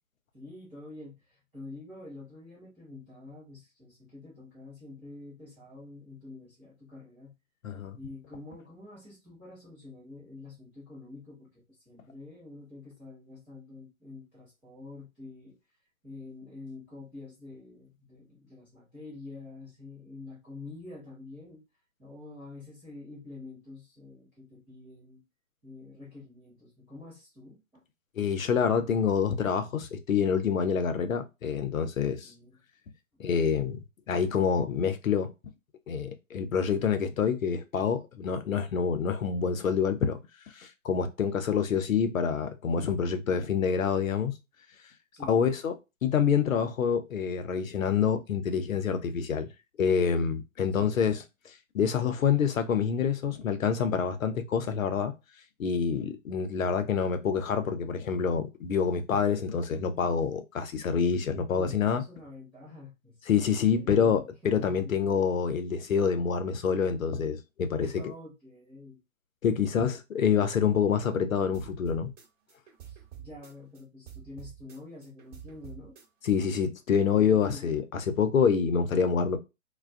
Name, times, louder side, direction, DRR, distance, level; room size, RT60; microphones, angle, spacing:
voice 1, 0.3-7.3 8.0-15.6 16.0-21.6 22.0-25.2 25.6-27.8 32.2-32.6 45.1-45.4 50.7-50.9 61.5-65.1 67.8-69.0 72.8-76.0 77.1-77.7, left 3 dB, 5° right, 0.4 m, -47 dB
voice 2, 7.6-8.0 28.2-32.3 33.2-35.3 35.9-40.2 40.5-44.3 45.3-45.7 46.0-49.5 49.8-51.2 51.4-55.1 55.6-62.0 63.3-67.9 69.4-72.1 76.2-79.4, left 6 dB, 75° left, 0.6 m, -27 dB
sound 1, 71.5-73.8 74.1-76.3, right 10 dB, 30° right, 1.0 m, -48 dB
2.3 x 2.2 x 2.4 m
figure-of-eight pair, 125°, 40 cm